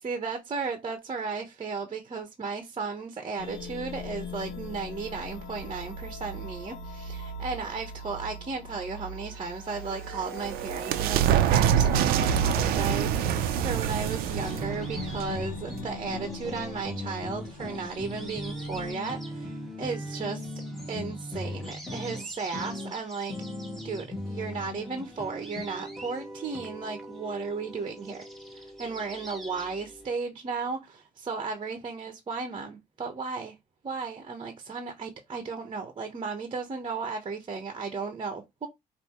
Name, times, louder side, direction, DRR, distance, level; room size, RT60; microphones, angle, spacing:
voice 1, 0.0-20.5 20.9-23.3 23.8-28.2 28.5-33.5 33.8-38.7, right 4 dB, 35° right, 1.0 m, -35 dB
sound 1, 3.4-18.9, left 1 dB, 90° left, 0.7 m, -41 dB
sound 2, 9.8-16.2, right 10 dB, 80° right, 0.6 m, -26 dB
sound 3, 14.4-30.1, left 1 dB, ahead, 1.8 m, -39 dB
5.1 x 2.7 x 3.0 m
supercardioid pair, 75°, 15 cm